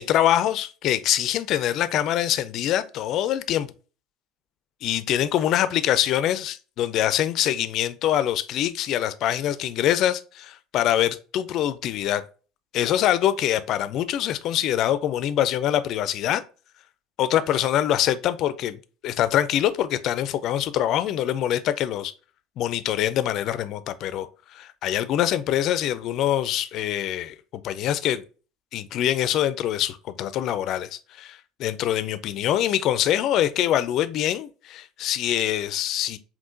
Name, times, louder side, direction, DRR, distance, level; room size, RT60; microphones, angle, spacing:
voice 1, 0.0-3.7 4.8-12.2 12.7-16.4 17.2-22.1 22.6-27.4 27.6-28.2 28.7-36.2, left 11 dB, 55° left, 0.4 m, -24 dB
5.5 x 2.4 x 2.5 m
figure-of-eight pair, 65°, 0 cm